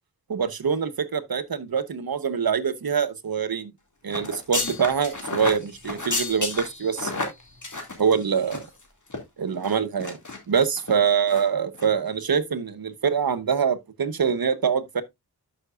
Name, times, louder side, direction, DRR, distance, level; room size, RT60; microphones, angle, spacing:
voice 1, 0.3-3.7 4.0-7.3 8.0-8.7 9.4-10.2 10.5-15.0, right 6 dB, 60° right, 1.0 m, -24 dB
sound 1, 4.1-8.8 9.1-9.2 9.6-10.4 10.8-11.0 11.3-11.5 11.7-11.9, left 3 dB, 45° left, 2.4 m, -31 dB
11.5 x 5.9 x 2.5 m
wide cardioid pair, 80°, 41 cm